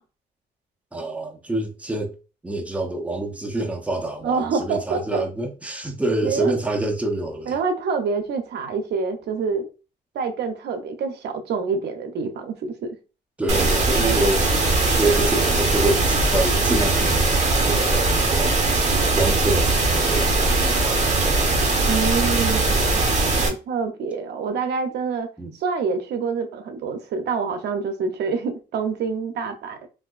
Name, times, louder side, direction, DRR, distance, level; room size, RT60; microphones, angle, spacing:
voice 1, 0.9-2.1 2.4-7.6 13.4-14.5 15.0-21.3 25.4-25.5, right 2 dB, 10° right, 0.6 m, -26 dB
voice 2, 4.2-5.2 6.2-6.6 7.5-9.7 10.1-13.0 21.9-23.0 23.4-25.3 25.6-29.9, right 5 dB, 75° right, 0.6 m, -26 dB
sound 1, 13.5-23.5, right 3 dB, 40° right, 0.9 m, -20 dB
3.4 x 2.5 x 2.3 m
cardioid pair, 95°, 18 cm